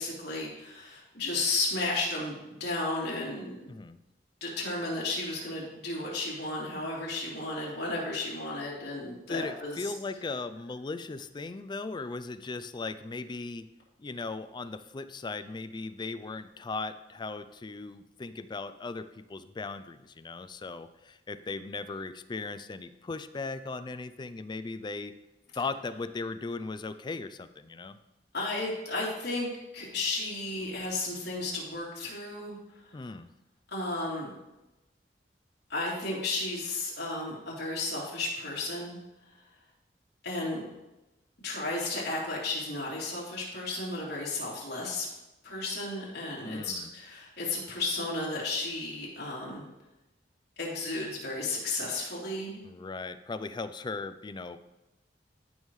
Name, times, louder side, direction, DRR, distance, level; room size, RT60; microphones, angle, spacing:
voice 1, 0.0-3.6 4.4-9.9 28.3-29.5 29.7-32.5 33.7-34.3 35.7-39.0 40.2-40.7 41.4-45.1 45.4-49.6 50.6-52.6, left 2 dB, 65° left, -6 dB, 3.3 m, -33 dB
voice 2, 3.7-4.0 9.3-13.6 14.0-25.1 25.5-28.0 32.9-33.3 46.4-46.9 52.6-54.6, left 3 dB, 25° left, 10 dB, 0.4 m, -38 dB
15.5 x 5.4 x 3.2 m, 0.99 s
head